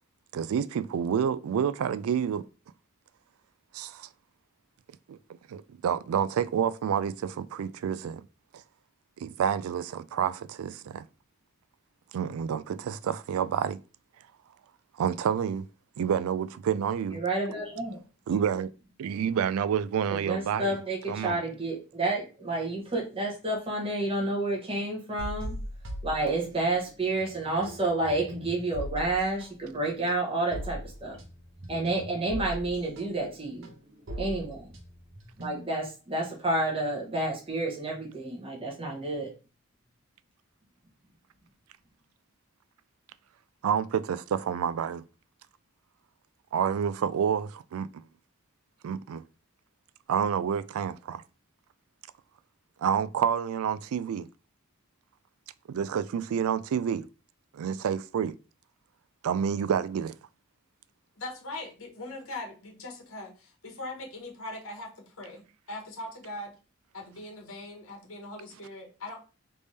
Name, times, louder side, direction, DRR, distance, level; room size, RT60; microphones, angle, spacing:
voice 1, 0.3-2.4 3.7-4.1 5.1-5.2 5.5-8.2 9.2-11.0 12.1-13.8 15.0-15.6 16.0-17.2 18.3-18.7 19.0-20.7 21.1-21.4 43.6-45.0 46.5-47.9 48.8-49.2 50.1-51.2 52.8-54.3 55.7-57.1 57.5-58.3 59.2-60.1, right 8 dB, 85° right, 0.3 m, -28 dB
voice 2, 17.1-18.0 20.1-25.6 26.0-31.2 31.7-33.7 34.2-34.7 35.4-39.3, right 2 dB, 25° right, 1.1 m, -30 dB
sound 1, 25.2-26.9 27.2-35.9, equal, 60° right, 1.0 m, -40 dB
voice 3, 61.2-66.5 66.9-69.2, left 2 dB, 75° left, 1.3 m, -41 dB
3.4 x 3.4 x 4.0 m
head